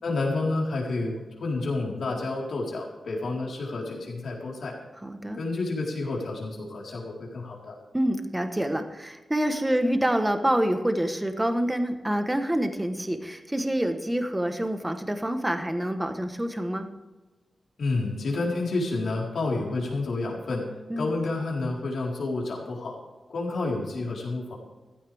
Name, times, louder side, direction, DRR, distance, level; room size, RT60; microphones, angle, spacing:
voice 1, 0.0-4.8 5.3-7.8 17.8-20.6 21.0-23.0 23.3-24.6, left 3 dB, 70° left, -2 dB, 4.2 m, -29 dB
voice 2, 5.0-5.4 7.9-16.9 20.9-21.1, right 1 dB, 10° right, 6 dB, 1.2 m, -27 dB
15.5 x 15.5 x 3.5 m, 1.2 s
wide cardioid pair, 175°, 0 cm